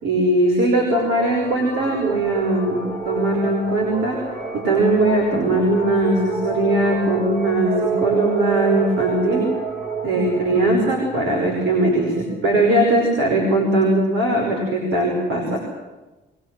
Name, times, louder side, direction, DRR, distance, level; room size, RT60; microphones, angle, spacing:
voice 1, 0.0-4.2 4.5-9.5 10.0-15.6, right 1 dB, 85° right, 0 dB, 5.5 m, -20 dB
sound 1, 0.9-12.7, right 4 dB, 50° right, 4.4 m, -29 dB
22.0 x 21.5 x 7.8 m, 1.1 s
cardioid pair, 90°, 20 cm